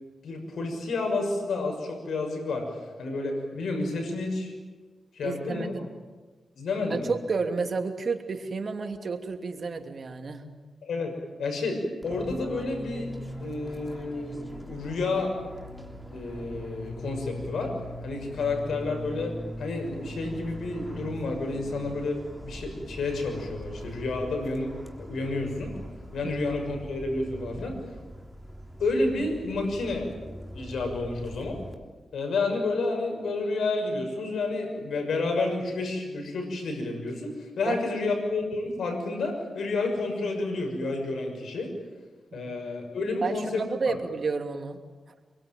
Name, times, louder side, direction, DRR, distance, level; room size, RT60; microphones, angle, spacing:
voice 1, 0.2-2.7 3.0-4.5 5.1-5.7 6.6-7.1 10.8-13.1 13.4-15.3 16.1-17.7 18.0-24.7 25.0-25.7 26.1-27.8 28.8-30.1 30.5-31.6 32.1-41.7 42.3-44.0, left 3 dB, 85° left, 3 dB, 6.2 m, -30 dB
voice 2, 5.2-5.9 6.9-10.4 26.2-26.3 37.7-37.8 42.3-42.4 43.2-44.8, right 4 dB, 55° right, 4 dB, 2.9 m, -31 dB
Fixed-wing aircraft airplane, 12.0-31.7, equal, 5° left, 3.4 m, -41 dB
26.0 x 23.5 x 9.1 m, 1.3 s
cardioid pair, 80°, 0 cm